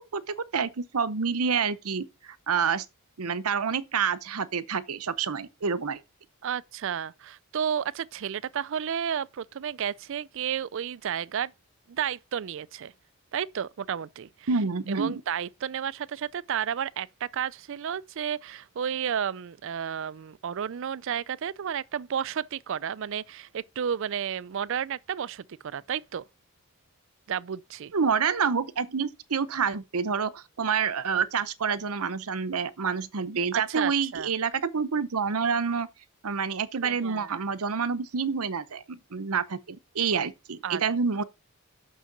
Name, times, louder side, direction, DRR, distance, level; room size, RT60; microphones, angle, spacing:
voice 1, 0.1-2.8 3.2-6.0 14.5-15.2 27.9-35.9 36.2-41.2, right 6 dB, 80° right, 0.8 m, -28 dB
voice 2, 6.4-11.5 11.9-12.9 13.3-14.5 14.9-26.2 27.3-27.9 33.5-34.3 36.7-37.4 40.6-40.8, right 8 dB, 60° right, 0.4 m, -32 dB
6.5 x 6.3 x 5.9 m
head